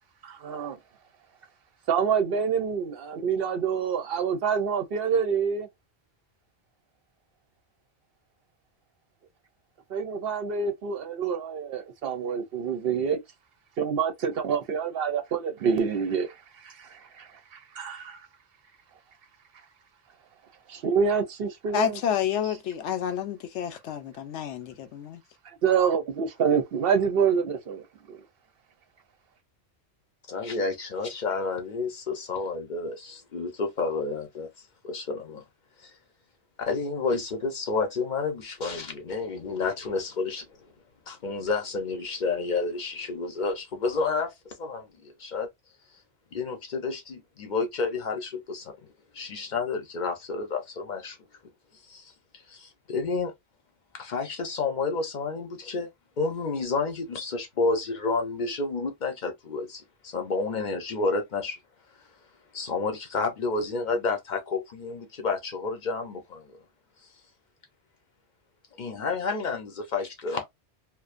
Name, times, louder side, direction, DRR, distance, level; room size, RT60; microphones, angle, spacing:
voice 1, 0.2-0.8 1.9-5.7 9.9-13.2 13.8-17.3 17.8-18.2 20.7-22.0 25.4-28.2, right 6 dB, 65° right, 0.7 m, -27 dB
voice 2, 21.7-25.2, left 9 dB, 85° left, 0.9 m, -29 dB
voice 3, 30.3-34.5 34.8-35.4 35.8-35.9 36.6-40.7 41.1-45.5 46.3-48.8 49.1-51.2 51.8-53.3 53.9-55.9 56.2-61.6 62.5-66.6 68.8-70.5, left 4 dB, 50° left, 0.7 m, -30 dB
2.5 x 2.1 x 2.4 m
omnidirectional pair, 1.2 m